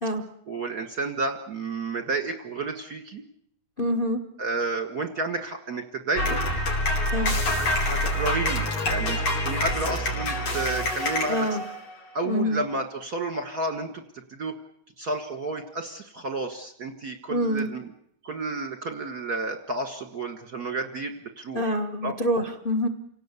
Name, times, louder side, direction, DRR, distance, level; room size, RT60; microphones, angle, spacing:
voice 1, 0.5-3.2 4.4-6.4 7.2-11.5 12.1-14.0 14.3-14.6 15.0-17.9 18.2-22.1, right 3 dB, 45° right, 6 dB, 1.4 m, -31 dB
voice 2, 3.8-4.2 7.1-7.4 11.3-11.6 12.2-12.6 17.3-17.7 21.5-22.9, equal, 45° left, 7 dB, 0.6 m, -26 dB
sound 1, 6.2-12.1, left 1 dB, 65° left, 5.3 m, -26 dB
29.0 x 18.0 x 8.2 m, 0.70 s
omnidirectional pair, 3.8 m